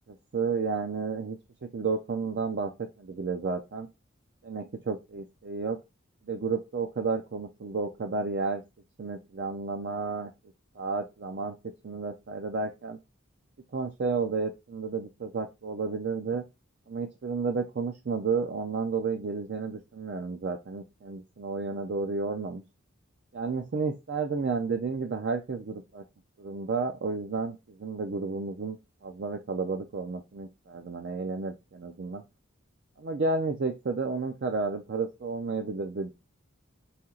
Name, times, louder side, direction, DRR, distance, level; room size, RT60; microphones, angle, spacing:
voice 1, 0.1-1.4 1.7-2.7 3.0-3.9 4.4-5.8 6.3-8.6 9.0-10.3 10.8-11.6 11.8-13.0 13.7-16.4 16.9-22.6 23.3-26.0 26.4-32.2 33.0-36.1, right 4 dB, 55° right, 5 dB, 0.5 m, -32 dB
4.3 x 2.8 x 3.7 m, 0.24 s
head